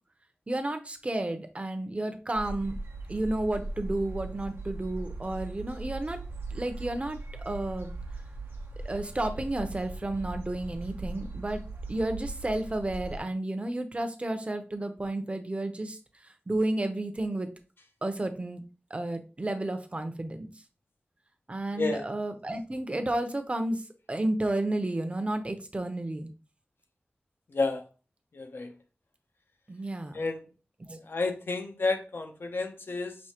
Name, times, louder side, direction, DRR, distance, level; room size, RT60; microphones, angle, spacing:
voice 1, 0.5-2.8 3.1-6.2 6.5-7.2 7.4-7.9 8.8-11.6 11.9-16.0 16.5-17.5 18.0-18.6 18.9-20.5 21.5-23.8 24.1-26.3 29.7-30.2 30.8-31.0, right 1 dB, 35° right, 0.7 m, -31 dB
sound 1, 2.3-13.2, right 2 dB, 80° right, 0.8 m, -39 dB
voice 2, 21.8-22.1 27.5-27.8 28.3-28.7 30.1-30.4 31.1-33.2, left 3 dB, 70° left, 0.8 m, -30 dB
6.2 x 2.7 x 2.9 m
wide cardioid pair, 75°, 4 cm